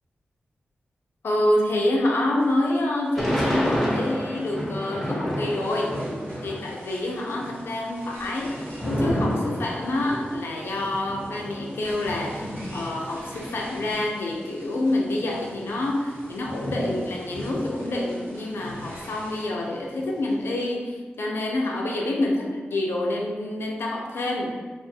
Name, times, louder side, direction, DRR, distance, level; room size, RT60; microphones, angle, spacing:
voice 1, 1.2-6.0 6.4-24.5, left 1 dB, 75° left, -1 dB, 0.5 m, -27 dB
sound 1, 2.4-19.4, equal, 65° right, 1.1 m, -48 dB
Thunder / Rain, 3.1-6.8 7.1-14.1 14.7-14.8 15.0-18.2 18.6-20.3, equal, ahead, 0.8 m, -31 dB
2.4 x 2.4 x 2.7 m, 1.4 s
cardioid pair, 70°, 4 cm